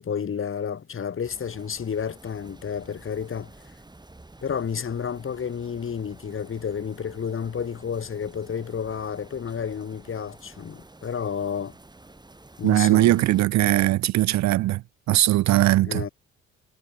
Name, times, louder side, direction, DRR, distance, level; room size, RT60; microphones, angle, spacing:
voice 1, 0.0-3.5 4.4-11.7 12.6-13.2 15.8-16.1, left 7 dB, 45° left, 2.3 m, -31 dB
sound 1, 1.2-13.4, right 2 dB, 15° right, 4.7 m, -50 dB
voice 2, 12.6-14.8 15.1-16.0, right 16 dB, 65° right, 0.5 m, -20 dB
cardioid pair, 90°, 30 cm